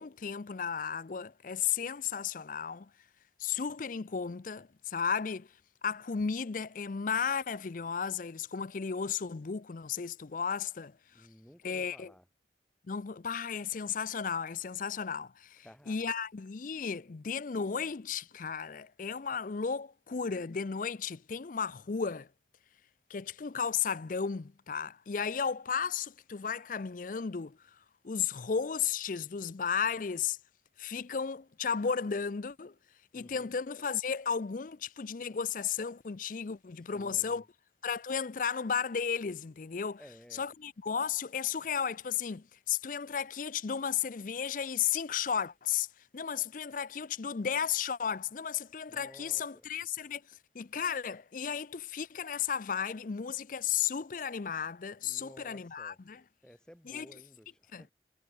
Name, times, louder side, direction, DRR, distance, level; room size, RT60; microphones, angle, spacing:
voice 1, 0.0-2.9 3.4-5.5 5.8-11.3 11.6-12.1 12.9-22.3 23.1-27.6 28.0-30.4 30.8-32.7 33.1-37.4 37.8-40.0 40.4-45.9 46.1-50.2 50.5-56.2 56.9-57.1 57.7-57.8, left 7 dB, 45° left, 0.5 m, -34 dB
voice 2, 11.1-12.3 15.5-16.1 33.1-33.6 36.8-37.5 40.0-40.5 48.9-49.7 55.0-56.0 56.4-57.9, equal, 5° left, 2.4 m, -55 dB
head